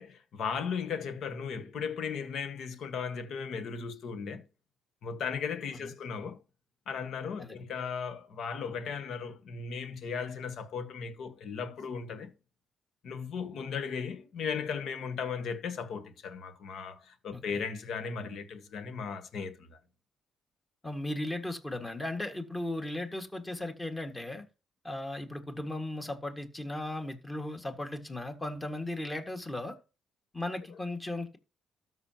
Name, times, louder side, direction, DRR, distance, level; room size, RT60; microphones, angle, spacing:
voice 1, 0.0-4.4 5.0-6.4 6.9-12.3 13.0-19.8 30.7-30.8, left 6 dB, 70° left, 1.5 m, -36 dB
voice 2, 20.8-24.4 24.8-29.7 30.3-31.4, left 1 dB, 15° left, 1.8 m, -36 dB
13.0 x 5.8 x 2.9 m
cardioid pair, 90°, 0 cm